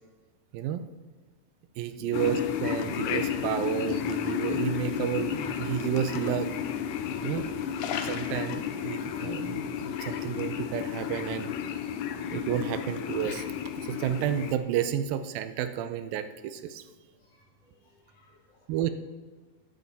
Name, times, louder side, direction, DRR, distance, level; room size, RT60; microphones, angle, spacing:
voice 1, 0.5-0.9 1.8-6.5 7.2-7.5 8.0-11.5 12.3-13.5 13.8-16.8 18.7-18.9, right 10 dB, 85° right, 10 dB, 2.4 m, -31 dB
sound 1, 2.1-14.6, left 8 dB, 80° left, 1.9 m, -32 dB
voice 2, 16.8-18.8, left 5 dB, 55° left, -1 dB, 2.3 m, -57 dB
13.0 x 9.3 x 4.1 m, 1.3 s
omnidirectional pair, 4.1 m